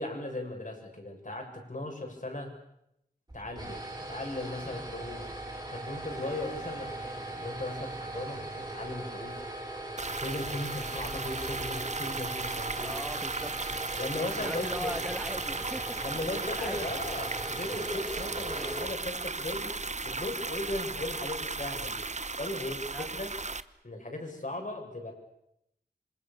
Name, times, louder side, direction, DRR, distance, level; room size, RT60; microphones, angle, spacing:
voice 1, 0.0-2.5 3.3-3.8 4.1-5.2 5.7-9.4 10.2-12.9 14.0-15.0 16.0-19.7 20.0-22.0 22.3-23.3 23.8-25.1, left 2 dB, 50° left, 2 dB, 7.2 m, -37 dB
sound 1, 3.3-19.5, right 2 dB, 25° right, 6.4 m, -40 dB
sound 2, 10.0-23.6, right 3 dB, 45° right, 1.0 m, -36 dB
voice 2, 12.8-13.9 14.4-16.9 22.9-23.1, equal, 5° right, 10 dB, 2.0 m, -40 dB
27.5 x 25.0 x 7.0 m, 0.79 s
wide cardioid pair, 65°, 17 cm